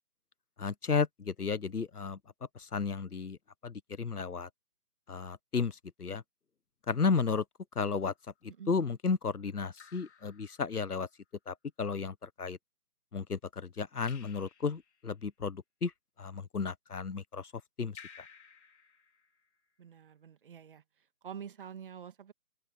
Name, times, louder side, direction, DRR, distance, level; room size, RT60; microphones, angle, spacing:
voice 1, 0.6-2.2 2.5-3.4 3.6-4.5 5.1-6.2 6.9-7.4 7.7-8.1 8.7-11.1 11.5-12.6 13.1-15.9 16.2-17.5 17.8-18.0, left 5 dB, 70° left, 1.4 m, -33 dB
Raindrop / Drip, 8.0-8.4 9.7-11.1 14.0-15.1 17.9-19.7, left 7 dB, 45° left, 3.6 m, -56 dB
voice 2, 19.8-20.8 21.2-22.3, right 8 dB, 35° right, 1.9 m, -46 dB
open air
figure-of-eight pair, 150°, 47 cm